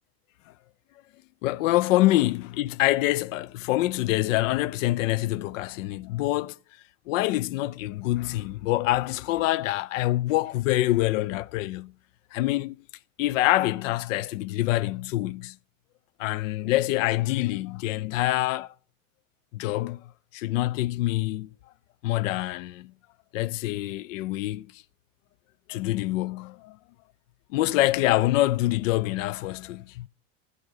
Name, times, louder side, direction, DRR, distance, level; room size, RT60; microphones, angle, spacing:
voice 1, 1.4-6.6 7.1-11.9 12.3-12.8 13.2-15.6 16.2-18.7 19.5-21.5 22.0-22.9 23.3-24.8 25.7-26.8 27.5-30.1, left 16 dB, 70° left, 0.5 m, -26 dB
12.5 x 8.0 x 3.9 m
supercardioid pair, 130°, 40 cm